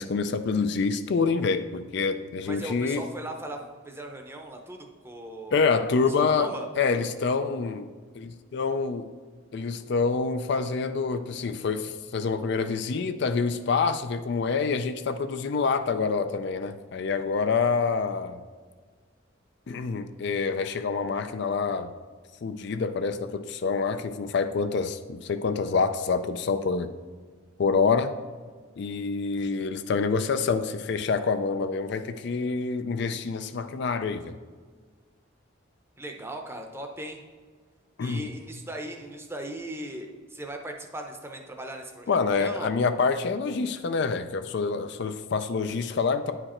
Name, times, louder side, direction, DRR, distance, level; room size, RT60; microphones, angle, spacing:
voice 1, 0.0-3.0 5.5-7.9 8.1-9.1 9.5-18.4 19.7-21.9 22.4-26.9 27.6-28.1 28.8-34.4 38.0-38.3 42.1-46.3, left 4 dB, 55° left, 10 dB, 0.4 m, -27 dB
voice 2, 2.4-3.6 3.8-5.7 6.0-6.7 36.0-37.2 38.0-42.7, right 1 dB, 10° right, 3 dB, 0.7 m, -38 dB
9.7 x 4.9 x 4.3 m, 1.5 s
head